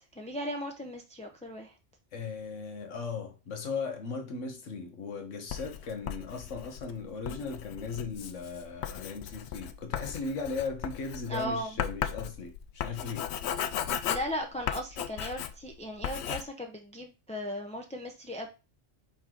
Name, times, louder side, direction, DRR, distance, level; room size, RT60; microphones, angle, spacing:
voice 1, 0.2-1.7 11.3-11.7 14.1-18.5, equal, 10° left, 0.4 m, -37 dB
voice 2, 2.1-13.3, left 4 dB, 85° left, 1.5 m, -37 dB
Writing, 5.5-15.7 16.0-16.4, left 9 dB, 70° left, 0.8 m, -36 dB
5.4 x 4.6 x 3.8 m
omnidirectional pair, 1.2 m